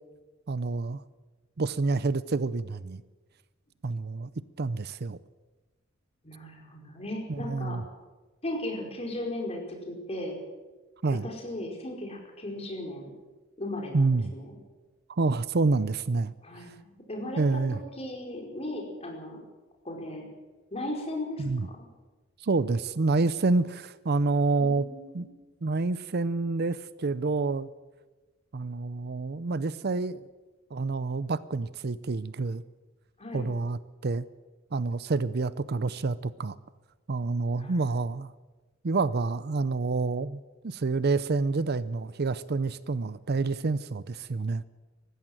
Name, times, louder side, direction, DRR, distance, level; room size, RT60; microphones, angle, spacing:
voice 1, 0.5-1.0 1.6-3.0 3.8-4.3 4.6-5.2 7.3-7.8 11.0-11.3 13.9-14.3 15.2-16.3 17.4-17.8 21.4-21.7 22.4-24.9 25.1-25.3 25.6-27.7 28.5-30.3 30.7-32.6 33.3-34.3 34.7-36.6 37.1-38.3 38.8-44.6, right 3 dB, 55° right, 17 dB, 0.6 m, -28 dB
voice 2, 6.2-7.8 8.4-10.3 11.1-13.1 13.6-14.5 16.4-19.4 19.8-20.2 20.7-21.8 24.6-25.3 33.2-33.5 37.6-37.9, left 1 dB, 30° left, 1 dB, 4.9 m, -37 dB
19.5 x 15.0 x 9.2 m, 1.2 s
head